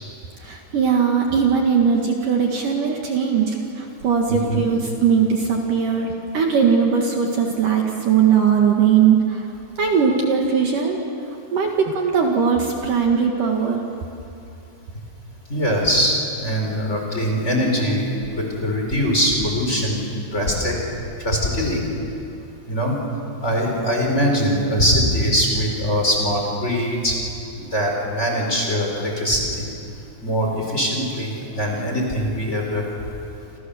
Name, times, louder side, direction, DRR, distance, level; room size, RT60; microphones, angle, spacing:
voice 1, 0.4-9.5 9.8-11.0 11.5-13.8, right 6 dB, 60° right, 1 dB, 3.0 m, -19 dB
voice 2, 4.3-4.6 15.5-20.0 20.3-20.8 21.2-21.8 22.7-23.0 23.4-27.2 27.5-29.7 30.2-32.9, equal, 15° left, 0 dB, 4.7 m, -22 dB
29.0 x 28.0 x 7.1 m, 2.7 s
omnidirectional pair, 4.7 m